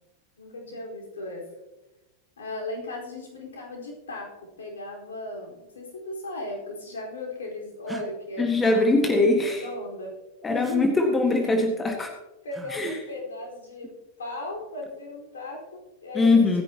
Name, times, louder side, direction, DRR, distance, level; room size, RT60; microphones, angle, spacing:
voice 1, 0.4-1.4 2.4-10.2 10.5-11.0 11.5-11.6 12.4-16.4, left 2 dB, 65° left, -1 dB, 4.5 m, -37 dB
sound 1, 7.9-8.1 10.6-10.8 12.5-12.8 14.5-15.0, right 3 dB, 10° right, 1.7 m, -41 dB
voice 2, 8.4-9.6 10.4-12.1 12.7-12.9 16.2-16.6, left 3 dB, 15° left, 4 dB, 1.7 m, -21 dB
25.0 x 10.0 x 3.0 m, 1.0 s
figure-of-eight pair, 90°, 0 cm